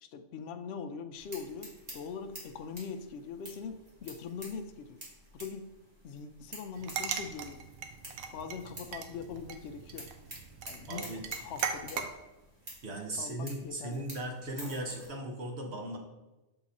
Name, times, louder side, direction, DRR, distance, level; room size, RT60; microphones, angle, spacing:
voice 1, 0.0-5.0 5.3-5.7 6.0-7.6 8.3-10.1 10.7-11.1 11.3-12.1 13.1-14.1, left 6 dB, 65° left, 7 dB, 0.7 m, -42 dB
sound 1, 1.2-15.1, equal, 30° right, 1.9 m, -50 dB
sound 2, 6.8-12.1, right 7 dB, 85° right, 1.1 m, -39 dB
voice 2, 10.9-11.2 12.8-16.0, right 1 dB, 55° right, 1 dB, 1.2 m, -37 dB
7.0 x 3.8 x 4.1 m, 1.0 s
omnidirectional pair, 1.4 m